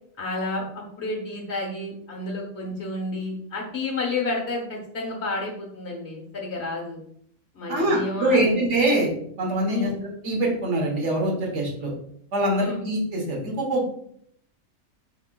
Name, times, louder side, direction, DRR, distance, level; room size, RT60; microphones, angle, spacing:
voice 1, 0.2-7.0 7.5-8.6 9.7-10.0 12.5-12.8, left 2 dB, 55° left, -1 dB, 1.3 m, -31 dB
voice 2, 7.7-9.1 9.4-11.9 12.3-13.9, right 1 dB, 60° right, -2 dB, 1.4 m, -24 dB
4.6 x 3.6 x 2.2 m, 0.67 s
omnidirectional pair, 1.4 m